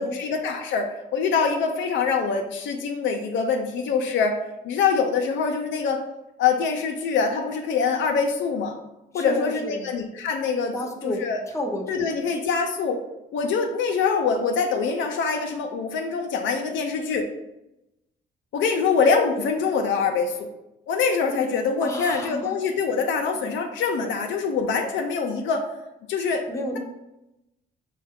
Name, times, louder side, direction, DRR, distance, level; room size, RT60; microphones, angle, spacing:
voice 1, 0.0-4.4 4.6-6.0 6.4-8.8 9.1-10.7 11.0-11.4 11.9-13.0 13.3-17.3 18.5-20.5 20.9-25.6 26.1-26.5, left 5 dB, 75° left, 3 dB, 0.5 m, -24 dB
voice 2, 9.1-9.9 10.7-11.2 11.5-12.1 21.8-22.5 26.5-26.8, left 1 dB, 15° left, 1 dB, 0.8 m, -31 dB
5.3 x 2.2 x 3.5 m, 0.92 s
cardioid pair, 90°, 20 cm